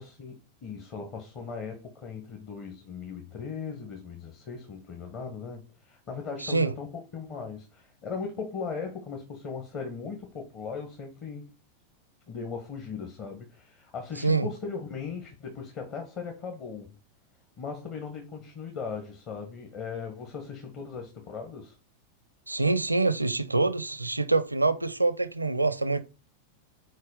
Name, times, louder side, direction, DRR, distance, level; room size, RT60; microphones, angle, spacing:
voice 1, 0.0-11.5 12.3-17.0 17.6-21.8, left 5 dB, 40° left, 1.3 m, -38 dB
voice 2, 6.4-6.7 14.2-14.5 22.5-26.0, right 3 dB, 85° right, 0.5 m, -25 dB
6.5 x 4.6 x 4.9 m
figure-of-eight pair, 90°, 0 cm